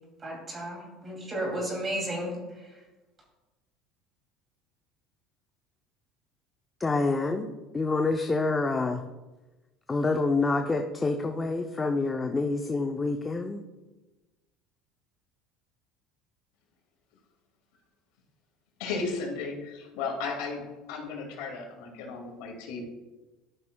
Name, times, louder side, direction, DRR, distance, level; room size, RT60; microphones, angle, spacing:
voice 1, 0.2-2.8, right 1 dB, 25° right, 0 dB, 2.6 m, -34 dB
voice 2, 6.8-9.0 9.9-13.6, left 3 dB, 15° left, 4 dB, 0.5 m, -27 dB
voice 3, 18.8-20.6 20.9-22.8, left 4 dB, 80° left, 1 dB, 2.1 m, -34 dB
12.0 x 5.9 x 2.2 m, 1.1 s
supercardioid pair, 115°, 0 cm